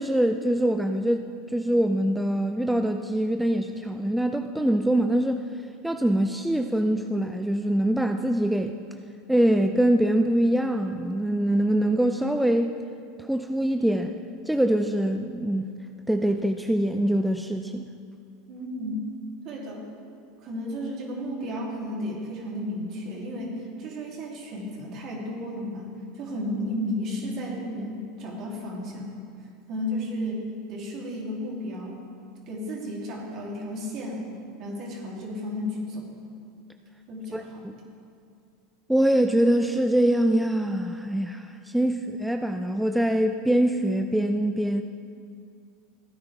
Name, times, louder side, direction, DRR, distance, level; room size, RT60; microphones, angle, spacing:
voice 1, 0.0-5.4 5.8-8.8 9.3-12.7 13.2-14.1 14.5-15.7 16.1-17.9 37.3-37.7 38.9-44.8, right 1 dB, 5° right, 6 dB, 0.4 m, -24 dB
voice 2, 18.5-19.1 19.4-19.8 20.4-29.1 29.7-32.0 32.5-34.3 34.6-36.1 37.1-37.7, left 1 dB, 50° right, -2 dB, 3.0 m, -33 dB
16.0 x 9.5 x 3.5 m, 2.4 s
hypercardioid pair, 95°, 0 cm